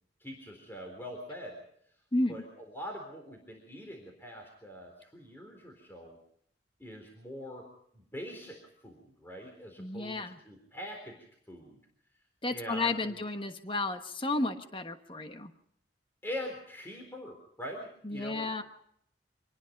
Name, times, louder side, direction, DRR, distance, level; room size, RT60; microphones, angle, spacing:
voice 1, 0.2-1.6 2.3-6.2 6.8-11.2 11.5-11.8 12.5-13.2 16.2-18.5, equal, 10° left, 2 dB, 3.9 m, -43 dB
voice 2, 2.1-2.4 9.8-10.4 12.4-15.5 18.0-18.6, left 2 dB, 30° left, 7 dB, 1.3 m, -32 dB
26.0 x 19.5 x 5.3 m, 0.69 s
head